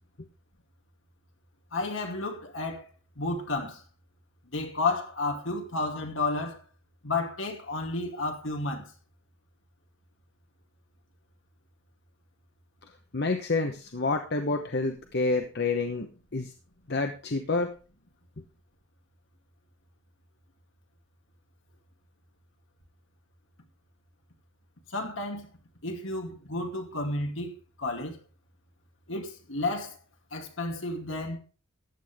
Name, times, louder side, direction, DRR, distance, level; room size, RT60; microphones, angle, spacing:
voice 1, 1.7-2.9 3.2-3.8 4.5-6.6 7.0-8.9 24.9-25.5 25.8-27.5 27.8-28.2 29.1-30.0 30.3-31.4, left 2 dB, 75° left, 2.6 m, -31 dB
voice 2, 13.1-16.1 16.3-16.5 16.9-17.7, left 3 dB, 55° left, 1.1 m, -28 dB
14.5 x 9.7 x 3.6 m
head